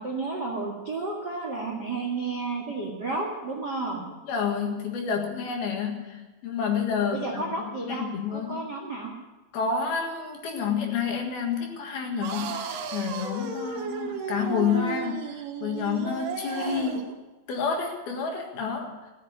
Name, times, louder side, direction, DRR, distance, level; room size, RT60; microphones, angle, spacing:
voice 1, 0.0-4.0 7.0-8.0 8.3-9.1, right 3 dB, 60° right, 0 dB, 1.0 m, -32 dB
voice 2, 4.3-8.6 9.5-17.1 17.5-19.0, left 6 dB, 60° left, 2 dB, 3.2 m, -29 dB
sound 1, 12.2-17.1, right 6 dB, 80° right, 4.0 m, -34 dB
15.5 x 8.5 x 9.3 m, 1.1 s
omnidirectional pair, 5.5 m